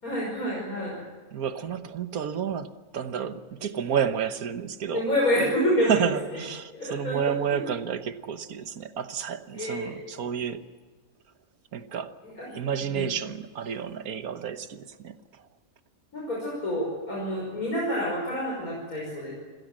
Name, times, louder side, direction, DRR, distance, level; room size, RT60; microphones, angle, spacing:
voice 1, 0.0-1.0 4.9-6.4 6.7-7.2 7.5-7.7 9.5-10.0 12.2-12.5 12.8-13.1 16.1-19.3, equal, 80° left, 6.1 m, -28 dB
voice 2, 1.3-5.0 5.9-10.6 11.7-12.1 12.5-15.1, right 8 dB, 90° right, 1.6 m, -30 dB
27.5 x 16.5 x 7.6 m
omnidirectional pair, 1.5 m